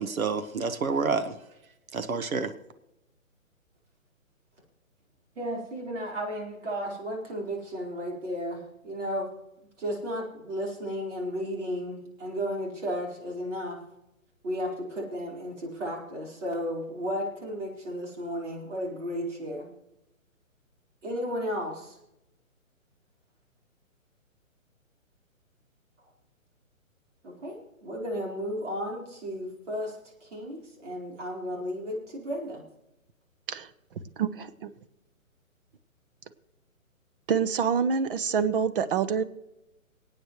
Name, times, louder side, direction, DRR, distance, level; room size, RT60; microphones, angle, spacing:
voice 1, 0.0-1.4 1.9-2.5, right 4 dB, 80° right, 10 dB, 1.2 m, -28 dB
voice 2, 5.4-9.3 9.8-13.8 14.4-19.7 21.0-22.0 27.2-30.0 30.2-32.6, equal, 60° right, -1 dB, 4.4 m, -34 dB
voice 3, 34.2-34.7 37.3-39.2, right 6 dB, 40° right, 13 dB, 0.9 m, -26 dB
27.0 x 9.1 x 3.1 m, 0.90 s
hypercardioid pair, 145°, 41 cm